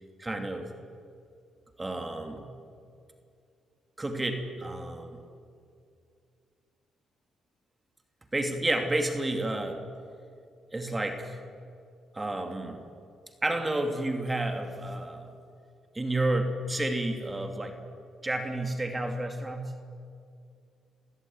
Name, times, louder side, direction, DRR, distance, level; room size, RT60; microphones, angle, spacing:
voice 1, 0.2-0.7 1.8-2.5 4.0-5.2 8.3-9.8 10.7-11.4 12.1-12.8 13.4-15.3 15.9-17.8 18.2-19.7, right 1 dB, 20° right, 5 dB, 2.5 m, -30 dB
27.5 x 16.0 x 9.5 m, 2.4 s
cardioid pair, 90°, 0 cm